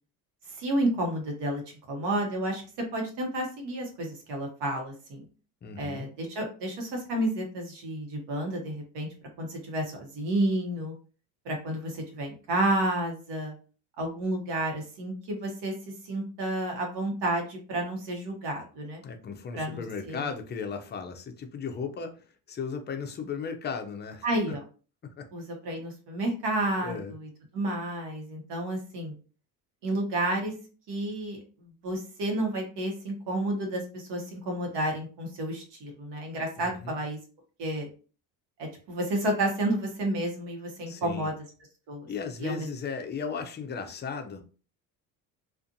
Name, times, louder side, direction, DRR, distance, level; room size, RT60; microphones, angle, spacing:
voice 1, 0.5-1.6 1.9-2.6 2.9-5.2 5.8-9.1 9.4-10.9 11.4-13.5 14.0-15.7 16.0-19.0 19.5-20.3 24.2-24.6 25.3-29.1 29.8-30.5 30.9-37.2 37.6-37.9 38.6-41.3 41.9-42.1 42.4-42.7, right 1 dB, 65° right, 1.1 m, -31 dB
voice 2, 5.6-6.1 19.0-22.2 22.5-24.2 25.0-25.3 26.8-27.1 36.6-37.0 40.9-41.3 42.1-44.4, left 6 dB, 25° left, 0.5 m, -36 dB
2.5 x 2.5 x 2.6 m
supercardioid pair, 90°, 44 cm